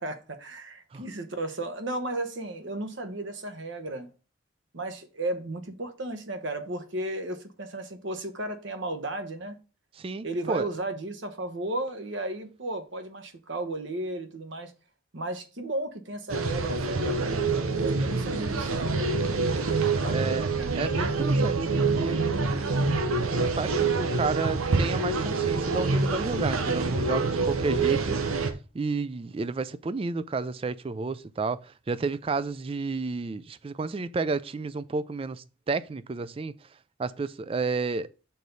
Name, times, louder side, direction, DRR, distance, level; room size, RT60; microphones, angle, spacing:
voice 1, 0.0-4.1 4.7-9.6 10.2-14.7 15.1-19.0 20.0-20.8, right 1 dB, 60° right, 1.0 m, -34 dB
voice 2, 10.0-10.7 20.1-20.4 20.8-22.9 23.4-36.5 37.0-38.1, right 4 dB, 25° right, 0.3 m, -31 dB
sound 1, 16.3-28.5, right 3 dB, 85° right, 0.9 m, -26 dB
6.6 x 4.1 x 5.2 m
head